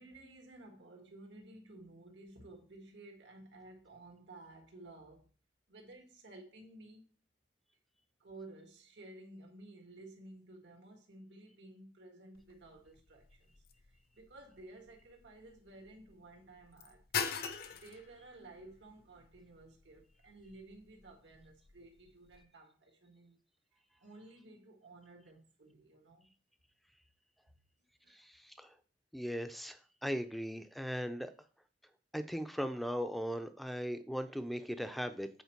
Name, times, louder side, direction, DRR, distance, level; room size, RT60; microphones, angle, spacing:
voice 1, 0.0-5.3 5.7-7.1 8.2-17.0 17.7-23.4 24.0-26.3 28.0-28.2, right 2 dB, 75° right, 1.7 m, -54 dB
sound 1, 12.3-22.4, left 6 dB, 55° left, 0.7 m, -45 dB
voice 2, 28.1-28.7 29.1-31.3 32.1-35.3, equal, ahead, 0.5 m, -38 dB
8.2 x 4.4 x 4.5 m
head